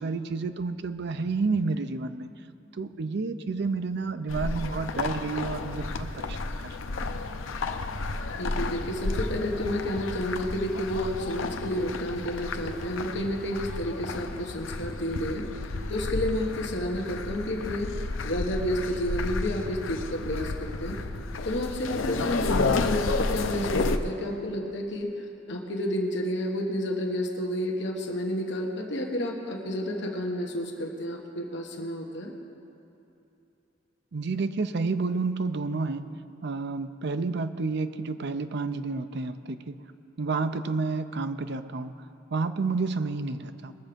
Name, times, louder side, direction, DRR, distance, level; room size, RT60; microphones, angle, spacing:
voice 1, 0.0-2.3 2.8-6.5 34.1-36.1 36.4-39.8 40.2-42.0 42.3-43.7, right 4 dB, 60° right, 10 dB, 0.5 m, -30 dB
sound 1, 4.3-24.0, left 3 dB, 85° left, 0.7 m, -32 dB
voice 2, 8.3-21.0 21.4-25.1 25.5-32.3, equal, 65° left, 1 dB, 1.3 m, -31 dB
20.5 x 7.2 x 5.1 m, 2.9 s
head